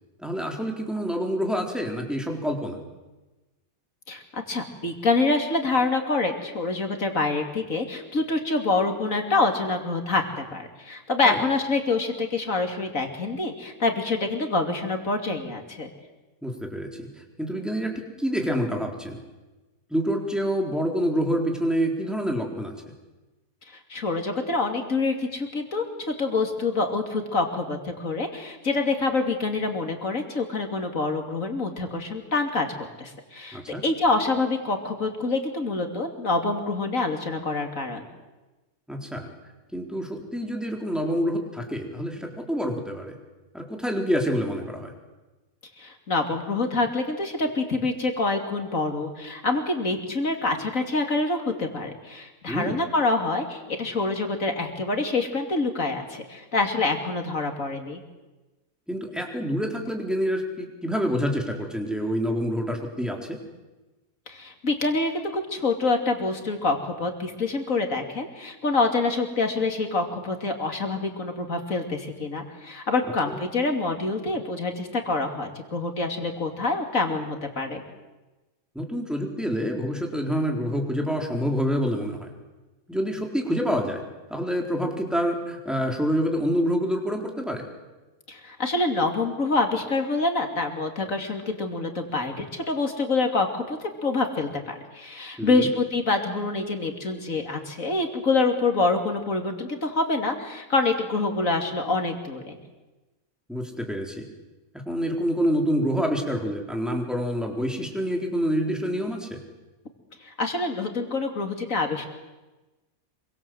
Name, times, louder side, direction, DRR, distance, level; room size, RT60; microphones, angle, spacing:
voice 1, 0.2-2.8 11.2-11.4 16.4-17.1 17.4-19.2 19.9-22.7 33.5-33.8 38.9-39.3 39.7-43.1 43.5-44.9 52.5-52.8 58.9-63.4 73.3-73.4 78.7-82.2 82.9-84.0 84.3-87.6 95.4-95.7 103.5-104.3 104.7-109.4, equal, ahead, 1 dB, 4.1 m, -27 dB
voice 2, 4.1-15.9 23.9-32.7 33.0-38.1 45.8-58.0 64.3-77.8 88.3-102.6 110.2-112.1, left 3 dB, 60° left, 4 dB, 3.3 m, -26 dB
26.5 x 24.0 x 7.9 m, 1.1 s
omnidirectional pair, 1.6 m